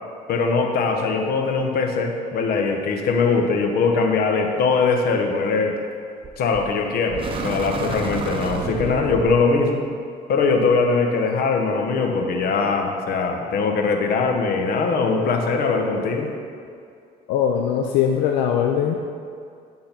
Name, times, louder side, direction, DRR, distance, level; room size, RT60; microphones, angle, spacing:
voice 1, 0.3-5.8 6.4-9.8 10.3-16.3, left 4 dB, 65° left, 3 dB, 1.0 m, -21 dB
sound 1, 6.2-6.7 7.1-9.4, right 3 dB, 30° right, 0.9 m, -29 dB
voice 2, 17.3-18.9, left 8 dB, 90° left, 2 dB, 0.5 m, -20 dB
8.8 x 3.8 x 5.9 m, 2.4 s
cardioid pair, 110°, 17 cm